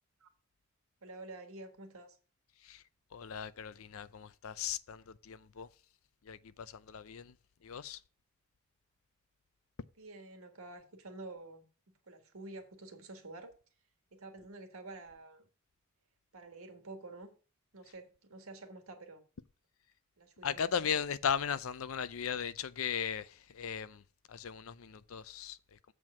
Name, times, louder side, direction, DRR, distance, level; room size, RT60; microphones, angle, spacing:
voice 1, 1.0-2.2 10.0-11.7 12.1-13.5 14.1-15.5 16.3-17.3 17.7-19.2 20.2-20.6, right 2 dB, 80° right, 1.7 m, -49 dB
voice 2, 3.1-5.7 6.2-7.3 7.6-8.0 20.4-25.9, left 7 dB, 70° left, 0.5 m, -37 dB
7.7 x 4.6 x 7.2 m
head